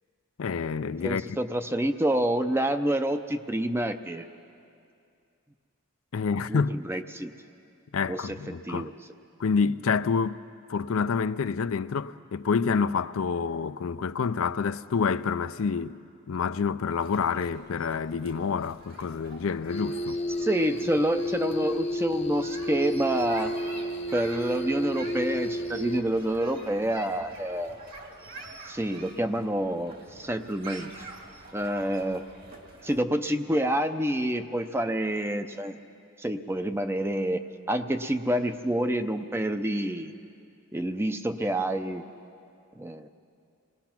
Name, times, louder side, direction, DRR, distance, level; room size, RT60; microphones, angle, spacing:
voice 1, 0.4-1.4 6.1-6.8 7.9-8.9 9.4-10.4 10.7-16.0 16.3-20.2, left 5 dB, 75° left, 0.4 m, -28 dB
voice 2, 1.0-4.2 6.5-7.3 8.1-8.9 20.4-23.5 24.1-27.8 28.6-30.9 31.5-32.2 32.8-35.8 36.2-37.4 37.7-40.1 40.7-42.0 42.8-43.1, right 1 dB, 10° right, 0.6 m, -28 dB
sound 1, 17.0-33.0, right 2 dB, 45° right, 1.9 m, -46 dB
sound 2, 19.7-26.0, equal, 30° left, 0.7 m, -31 dB
26.5 x 20.0 x 5.9 m
head